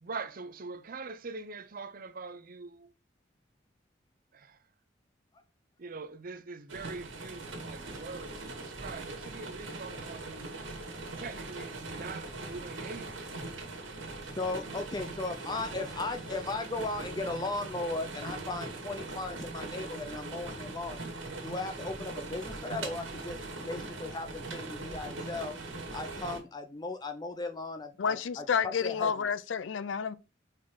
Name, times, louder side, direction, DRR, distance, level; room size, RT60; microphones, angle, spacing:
voice 1, 0.0-2.9 4.3-4.6 5.8-10.6 11.2-13.3, right 4 dB, 45° right, 0.6 m, -43 dB
sound 1, 6.7-26.4, right 2 dB, 80° right, 2.0 m, -41 dB
voice 2, 14.2-21.0 21.4-25.6 25.9-29.3, left 3 dB, 20° left, 0.5 m, -37 dB
voice 3, 28.0-30.1, left 6 dB, 75° left, 0.4 m, -30 dB
5.4 x 4.1 x 5.3 m
head